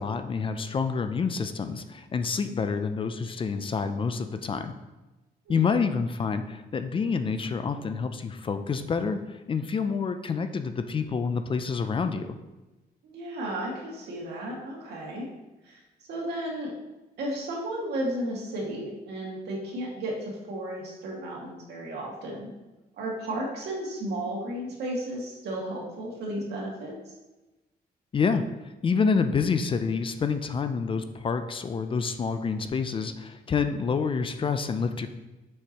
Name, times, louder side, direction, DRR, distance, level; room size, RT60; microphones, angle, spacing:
voice 1, 0.0-4.7 5.5-12.4 28.1-35.1, left 5 dB, 30° left, 9 dB, 0.4 m, -28 dB
voice 2, 13.0-15.3 15.6-15.8 16.1-16.7 17.2-22.5 23.0-27.1, right 1 dB, 85° right, -3 dB, 2.2 m, -34 dB
8.0 x 6.4 x 3.0 m, 1.1 s
cardioid pair, 150°, 17 cm